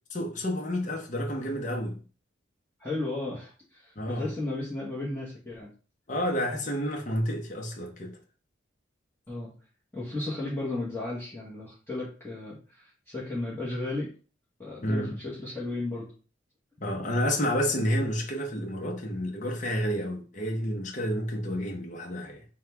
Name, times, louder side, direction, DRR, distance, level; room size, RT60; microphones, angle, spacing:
voice 1, 0.1-2.0 4.0-4.3 6.1-8.2 14.8-15.2 16.8-22.4, equal, 40° left, 0.8 m, -30 dB
voice 2, 2.8-5.7 9.3-9.5 9.9-14.1 14.6-16.1, left 2 dB, 10° left, 1.0 m, -34 dB
3.6 x 2.2 x 4.5 m
head